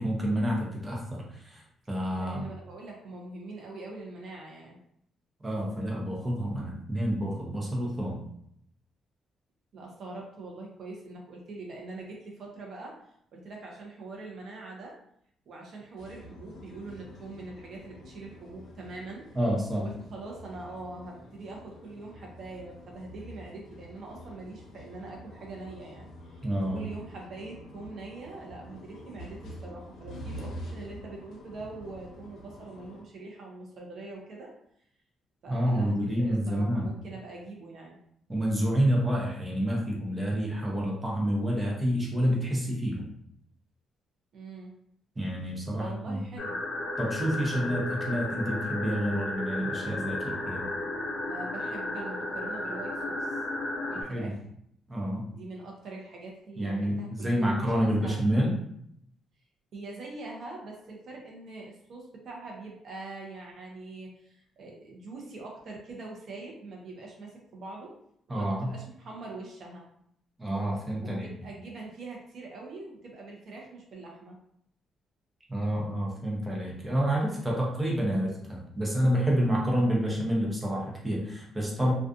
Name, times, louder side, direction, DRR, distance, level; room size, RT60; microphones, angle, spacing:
voice 1, 0.0-1.6 1.9-2.4 5.4-8.2 19.4-19.9 26.4-26.8 35.5-36.9 38.3-43.1 45.2-46.2 47.0-50.7 54.1-54.3 54.9-55.3 56.6-58.6 68.3-68.7 70.4-71.3 75.5-81.9, equal, 15° right, -3 dB, 0.7 m, -28 dB
voice 2, 2.1-4.8 9.7-12.9 13.3-14.9 15.5-19.2 19.7-34.5 35.4-38.0 44.3-44.7 45.8-46.6 51.3-53.4 53.9-54.5 55.3-58.1 59.7-67.9 68.3-69.8 71.0-74.4, right 3 dB, 60° right, -1 dB, 0.6 m, -43 dB
sound 1, 16.0-33.0, equal, 75° left, 0.7 m, -47 dB
sound 2, 46.4-54.0, left 2 dB, 55° left, 0.9 m, -34 dB
2.6 x 2.3 x 2.4 m, 0.71 s
cardioid pair, 105°, 0 cm